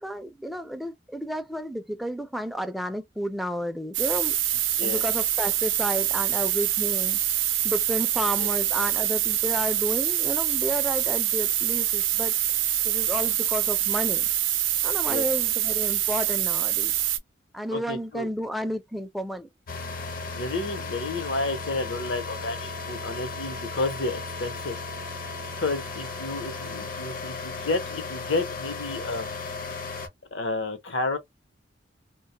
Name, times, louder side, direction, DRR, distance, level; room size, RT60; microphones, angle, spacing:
voice 1, 0.0-4.4 4.8-7.2 7.6-12.4 12.8-14.3 14.8-16.9 17.5-19.5, equal, ahead, 0.3 m, -31 dB
sound 1, 3.9-17.2, right 12 dB, 85° right, 0.5 m, -25 dB
voice 2, 17.7-18.3 20.3-24.9 25.6-29.4 30.3-31.2, left 3 dB, 75° left, 0.8 m, -31 dB
sound 2, 19.7-30.1, left 3 dB, 50° left, 0.6 m, -35 dB
2.2 x 2.1 x 2.8 m
head